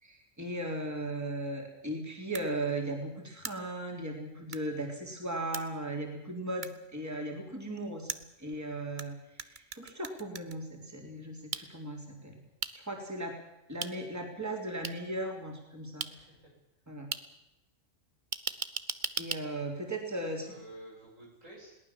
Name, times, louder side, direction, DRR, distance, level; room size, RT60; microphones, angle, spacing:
voice 1, 0.0-8.1 8.4-12.4 12.7-13.4 13.7-16.1 16.9-17.1 19.2-20.5, right 1 dB, 10° right, 1 dB, 3.5 m, -37 dB
sound 1, 2.3-2.5 3.4-3.5 4.5-4.6 5.5-5.6 6.6-6.7 8.1-9.0 9.4-10.6 11.5-11.6 12.6-12.7 13.8-13.9 14.8-14.9 16.0-16.1 17.1-17.2 18.3-19.4, right 6 dB, 40° right, 1.0 m, -36 dB
voice 2, 4.5-4.9 16.1-16.5 20.4-21.8, right 1 dB, 80° right, -1 dB, 7.8 m, -52 dB
21.5 x 18.5 x 7.4 m, 0.91 s
omnidirectional pair, 1.3 m